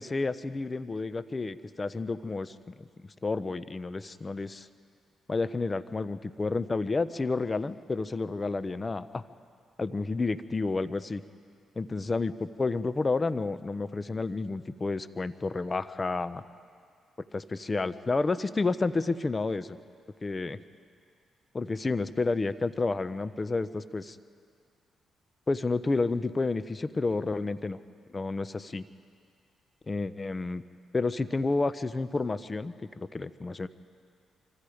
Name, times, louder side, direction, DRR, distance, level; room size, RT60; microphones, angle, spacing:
voice 1, 0.0-2.9 3.2-4.7 5.3-9.2 9.8-11.2 11.8-16.4 17.3-19.8 20.2-20.6 21.5-24.2 25.5-27.8 28.1-28.8 29.9-30.6 30.9-33.7, left 3 dB, 35° left, 14 dB, 0.9 m, -30 dB
26.0 x 25.0 x 5.1 m, 2.2 s
supercardioid pair, 55°, 0 cm